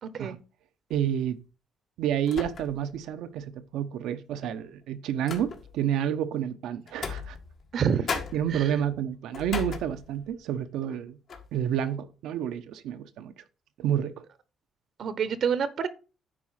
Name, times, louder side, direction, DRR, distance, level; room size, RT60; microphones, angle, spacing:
voice 1, 0.0-0.4 7.7-8.0 8.5-8.8 15.0-15.9, right 7 dB, 65° right, 0.9 m, -27 dB
sound 1, 0.9-1.2 2.3-3.0 3.4-3.5 4.4-5.9 6.9-7.8 8.1-10.4 10.8-11.0 11.3-11.6, left 5 dB, 60° left, 1.9 m, -38 dB
voice 2, 0.9-1.4 2.0-7.4 8.3-11.2 11.5-13.3 13.8-14.3, right 10 dB, 85° right, 0.9 m, -29 dB
9.9 x 4.2 x 5.7 m
cardioid pair, 90°, 0 cm